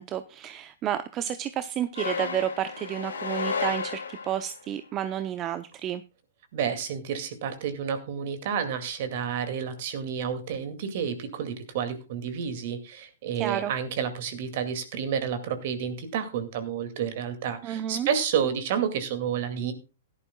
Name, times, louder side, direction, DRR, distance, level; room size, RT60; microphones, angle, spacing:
voice 1, 0.0-6.0 13.4-13.7 17.6-18.1, right 10 dB, 30° right, 12 dB, 0.7 m, -31 dB
sound 1, 1.9-4.6, left 5 dB, 80° left, 2.4 m, -32 dB
voice 2, 6.5-19.7, right 7 dB, 55° right, 10 dB, 2.3 m, -30 dB
16.5 x 11.0 x 2.3 m, 0.30 s
hypercardioid pair, 115°, 0 cm